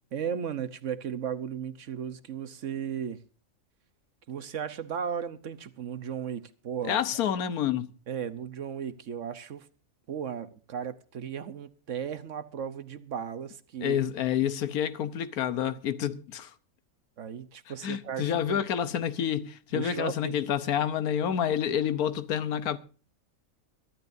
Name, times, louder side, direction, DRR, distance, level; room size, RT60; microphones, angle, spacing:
voice 1, 0.1-3.2 4.3-7.0 8.1-9.7 10.1-14.0 17.2-18.6 19.7-20.3, right 8 dB, 60° right, 1.2 m, -35 dB
voice 2, 6.8-7.9 13.8-16.5 17.8-22.8, left 9 dB, 90° left, 1.4 m, -28 dB
24.0 x 12.5 x 2.6 m
omnidirectional pair, 1.5 m